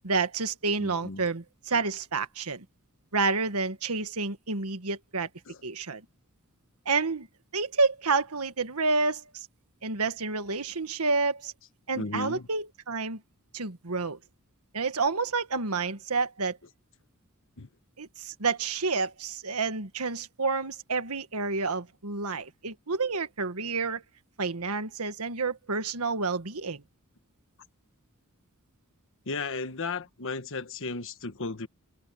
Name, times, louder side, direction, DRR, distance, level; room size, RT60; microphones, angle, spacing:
voice 1, 0.0-2.7 3.1-5.3 5.6-6.1 6.9-7.3 7.5-9.5 9.8-11.5 11.9-13.2 13.5-14.2 14.7-16.6 18.0-24.0 24.4-26.8, right 4 dB, 85° right, 1.6 m, -29 dB
voice 2, 0.8-1.2 1.7-1.8 5.5-5.6 11.9-12.5 17.6-17.7 29.3-31.7, left 3 dB, 60° left, 1.4 m, -35 dB
head